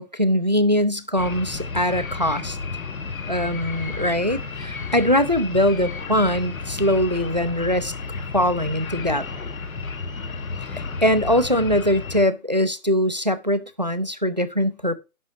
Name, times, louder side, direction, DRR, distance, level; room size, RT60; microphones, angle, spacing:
voice 1, 0.0-2.6 3.3-7.9 8.3-9.3 10.7-14.9, equal, 35° right, 0.4 m, -22 dB
sound 1, 1.2-12.2, left 4 dB, 80° left, 1.7 m, -32 dB
10.5 x 6.0 x 2.9 m
hypercardioid pair, 175°, 41 cm